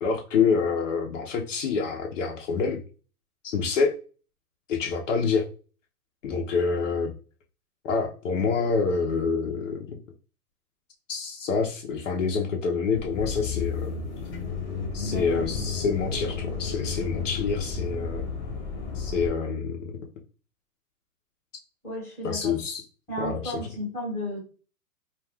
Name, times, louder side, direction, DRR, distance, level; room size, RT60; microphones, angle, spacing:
voice 1, 0.0-2.8 3.4-3.9 4.7-5.5 6.2-7.1 7.8-10.0 11.1-13.9 14.9-18.2 18.9-19.9 22.2-22.8 23.2-23.5, left 5 dB, 55° left, 1 dB, 0.7 m, -27 dB
sound 1, 12.9-19.3, left 5 dB, 30° left, 1.0 m, -32 dB
voice 2, 15.0-15.4 21.8-22.6 23.1-24.4, equal, 5° left, -6 dB, 0.9 m, -34 dB
2.4 x 2.3 x 3.4 m, 0.36 s
hypercardioid pair, 150°, 46 cm